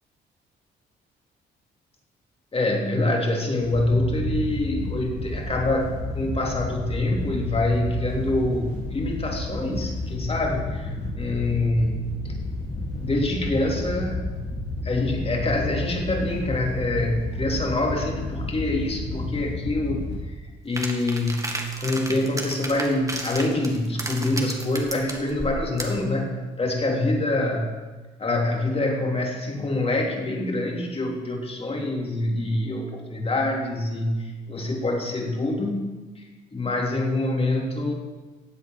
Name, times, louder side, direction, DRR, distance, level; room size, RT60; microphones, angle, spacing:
voice 1, 2.5-12.4 12.6-14.2 14.8-20.4 20.6-27.7 28.2-36.2 36.5-37.9, left 2 dB, 30° left, 1 dB, 3.1 m, -26 dB
Wind / Boat Water vehicle, 3.6-20.1, left 2 dB, 60° left, 5.7 m, -31 dB
sound 1, 20.8-26.0, right 2 dB, 15° right, 2.0 m, -33 dB
15.5 x 8.2 x 6.3 m, 1.3 s
cardioid pair, 90°, 20 cm